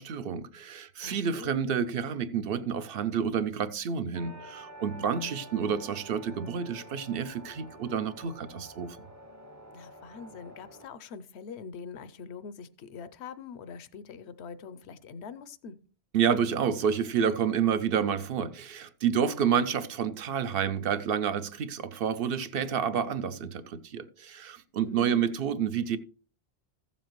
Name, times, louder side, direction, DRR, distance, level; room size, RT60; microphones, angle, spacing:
voice 1, 0.0-9.0 16.1-26.0, right 7 dB, 65° right, 0.8 m, -29 dB
voice 2, 1.0-1.5 4.9-5.3 9.7-15.8 19.4-19.7 24.8-25.2, left 5 dB, 80° left, 0.9 m, -44 dB
sound 1, 4.1-10.9, right 1 dB, 20° right, 0.6 m, -49 dB
15.0 x 7.2 x 3.0 m
omnidirectional pair, 1.1 m